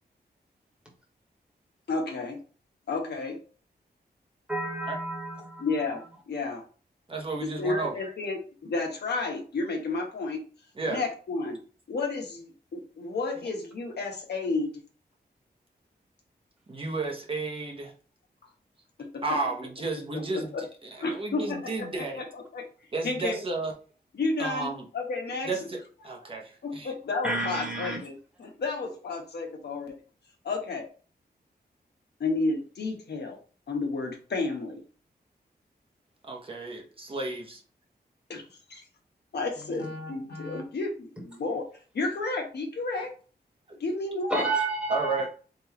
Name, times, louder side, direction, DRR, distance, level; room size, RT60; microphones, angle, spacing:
voice 1, 1.9-2.4 2.9-3.4 5.6-6.6 7.4-10.4 10.9-11.6 11.9-14.7 19.0-19.2 20.1-20.6 21.0-22.7 23.0-23.4 24.1-25.5 26.6-29.9 30.4-30.8 32.2-33.4 33.7-34.8 38.3-38.8 39.3-41.6 41.9-43.1 43.8-44.5, left 3 dB, 75° left, 2 dB, 1.2 m, -31 dB
voice 2, 4.5-5.7 27.2-28.0 44.3-45.2, right 2 dB, 5° right, -1 dB, 1.3 m, -30 dB
voice 3, 7.1-8.1 10.8-11.0 16.7-17.9 19.2-20.7 21.0-22.2 22.9-23.7 24.4-24.9 25.4-26.9 36.3-37.6 44.9-45.3, right 3 dB, 30° right, 0 dB, 0.9 m, -32 dB
4.1 x 3.8 x 2.9 m, 0.38 s
wide cardioid pair, 175°, 17 cm